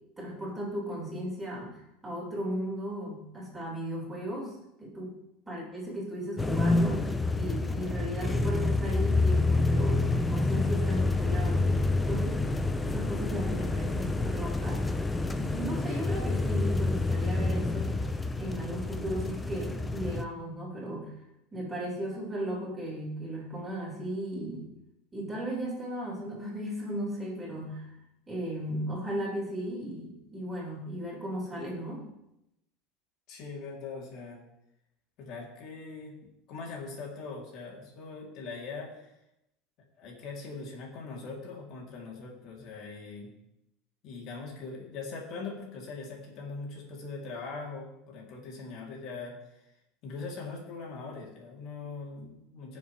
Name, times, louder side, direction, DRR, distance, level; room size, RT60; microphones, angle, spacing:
voice 1, 0.2-5.1 5.5-12.4 12.8-14.8 15.2-17.9 18.4-21.1 21.5-24.7 25.1-27.9 28.3-32.0, equal, 10° right, -5 dB, 4.9 m, -36 dB
sound 1, 6.4-20.2, left 2 dB, 10° left, 0.6 m, -28 dB
voice 2, 33.3-34.4 35.2-36.2 36.5-39.1 40.0-43.3 44.0-49.4 50.0-52.8, left 4 dB, 50° left, -1 dB, 3.2 m, -41 dB
18.5 x 7.3 x 3.4 m, 0.85 s
supercardioid pair, 140°, 0 cm